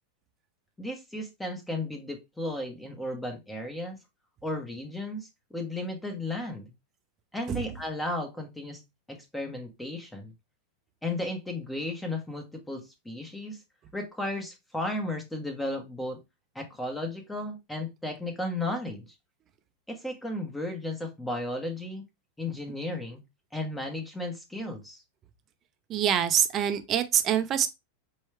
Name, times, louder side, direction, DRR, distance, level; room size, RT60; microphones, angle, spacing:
voice 1, 0.8-4.0 4.4-6.7 7.3-8.8 9.1-10.3 11.0-13.6 13.9-16.2 16.5-19.1 19.9-22.0 22.4-23.2 23.5-25.0, left 1 dB, 5° left, 1.1 m, -34 dB
voice 2, 25.9-27.7, right 9 dB, 35° right, 0.7 m, -25 dB
4.5 x 3.1 x 3.2 m
hypercardioid pair, 125°, 0 cm